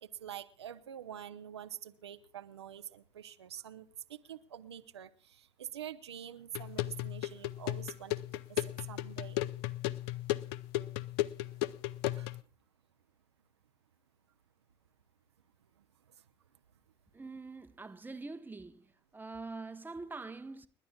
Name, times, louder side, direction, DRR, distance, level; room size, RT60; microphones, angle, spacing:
voice 1, 0.0-9.5 12.1-12.4 16.1-16.2, right 10 dB, 80° right, 0.7 m, -46 dB
sound 1, 6.6-12.4, left 15 dB, 65° left, 0.5 m, -35 dB
voice 2, 17.1-18.8 19.1-20.7, right 3 dB, 15° right, 1.0 m, -44 dB
30.0 x 11.0 x 2.3 m
figure-of-eight pair, 55°, 14 cm